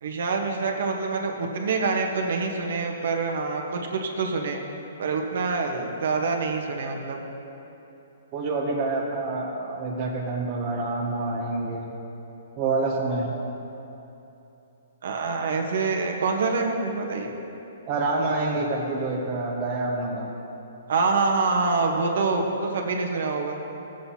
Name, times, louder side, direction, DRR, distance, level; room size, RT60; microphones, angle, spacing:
voice 1, 0.0-4.6 5.0-7.2 15.0-17.3 20.9-23.6, right 4 dB, 60° right, 2 dB, 1.1 m, -26 dB
voice 2, 8.3-11.9 12.6-13.4 17.9-20.3, right 3 dB, 25° right, -2 dB, 0.7 m, -27 dB
16.5 x 7.7 x 2.8 m, 3.0 s
hypercardioid pair, 175°, 0 cm